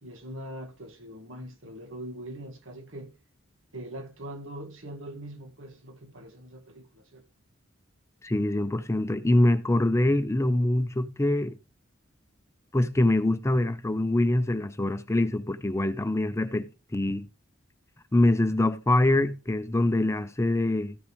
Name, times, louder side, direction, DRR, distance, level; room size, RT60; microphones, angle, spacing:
voice 1, 0.0-3.1 3.7-7.2, right 1 dB, 75° right, 1.7 m, -42 dB
voice 2, 8.2-11.6 12.7-17.3 18.1-21.0, left 1 dB, 15° left, 0.5 m, -24 dB
14.0 x 6.4 x 3.1 m
head